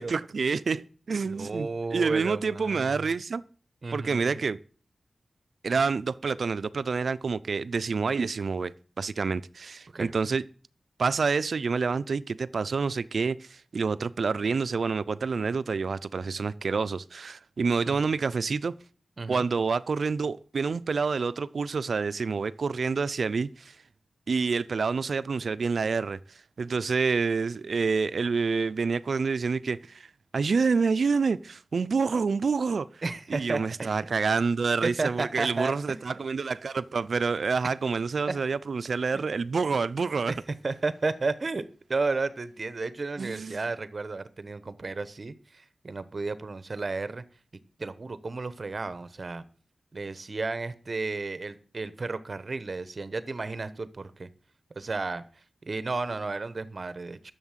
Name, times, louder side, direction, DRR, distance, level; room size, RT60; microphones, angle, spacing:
voice 1, 0.0-3.4 3.9-4.6 5.6-8.7 9.0-10.4 11.0-18.7 19.3-23.7 24.3-26.2 26.6-30.1 30.3-32.9 33.3-40.3 43.2-43.6, right 4 dB, 70° right, 0.5 m, -28 dB
voice 2, 1.3-3.0 3.8-4.4 9.9-10.1 17.9-18.1 19.2-19.4 33.0-34.0 34.8-36.0 39.1-39.2 40.3-40.4 40.6-47.2 47.8-49.4 49.9-54.3 54.8-57.3, right 3 dB, 45° right, 1.0 m, -33 dB
11.0 x 7.1 x 7.4 m
wide cardioid pair, 100°, 0 cm